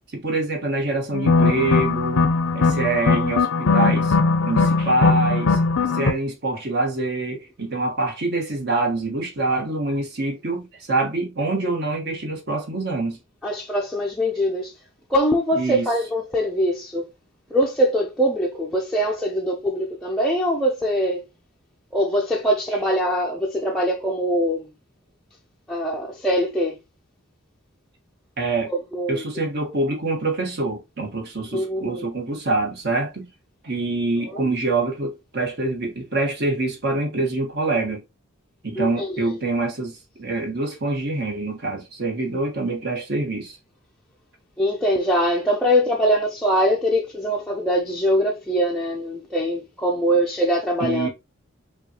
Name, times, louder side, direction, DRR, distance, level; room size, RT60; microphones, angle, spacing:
voice 1, 0.1-2.3 2.5-4.1 4.4-5.6 5.9-13.2 15.6-15.9 28.4-28.7 29.1-33.3 33.6-38.0 38.6-43.6 50.8-51.1, right 2 dB, 55° right, 1.3 m, -25 dB
sound 1, 1.1-6.1, left 4 dB, 85° left, 0.5 m, -19 dB
voice 2, 13.4-14.7 15.1-17.0 17.5-21.2 21.9-24.7 25.7-26.8 28.7-29.3 31.5-32.0 34.3-34.4 38.7-39.3 44.6-51.1, equal, ahead, 0.5 m, -22 dB
5.3 x 2.4 x 2.8 m
head